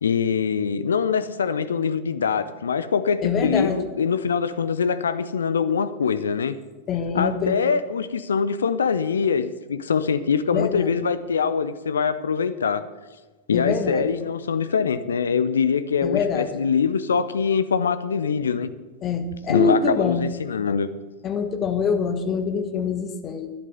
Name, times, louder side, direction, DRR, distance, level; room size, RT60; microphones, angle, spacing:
voice 1, 0.0-6.6 7.1-12.9 13.5-18.7 19.5-20.9, left 6 dB, 70° left, 14 dB, 0.6 m, -23 dB
voice 2, 3.2-3.8 6.9-7.6 10.5-10.9 13.5-14.1 16.0-16.5 19.0-20.3 21.2-23.5, left 5 dB, 30° left, 8 dB, 1.4 m, -24 dB
11.5 x 10.5 x 6.7 m, 1.3 s
figure-of-eight pair, 90°, 0 cm